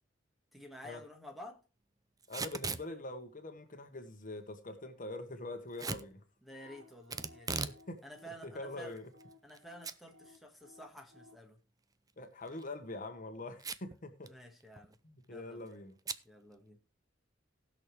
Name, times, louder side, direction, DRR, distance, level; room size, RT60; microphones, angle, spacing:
voice 1, 0.5-1.6 6.4-7.7 8.0-9.0 9.4-11.6 14.3-15.0 15.3-15.8 16.2-16.8, equal, ahead, 1.7 m, -51 dB
Packing tape duct tape / Tearing, 2.2-2.9 5.8-6.1 7.1-7.8 8.2-8.3 9.0-9.6 9.8-9.9 10.3-10.4 12.4-12.7 13.6-14.0 14.3-14.4 14.6-14.9 16.0-16.2, right 4 dB, 20° right, 0.5 m, -38 dB
voice 2, 2.3-6.2 7.6-8.0 8.5-9.1 12.2-14.3 15.0-15.9, left 2 dB, 45° left, 1.3 m, -44 dB
sound 1, 6.5-11.5, left 2 dB, 85° right, 2.6 m, -60 dB
19.0 x 6.4 x 3.3 m
head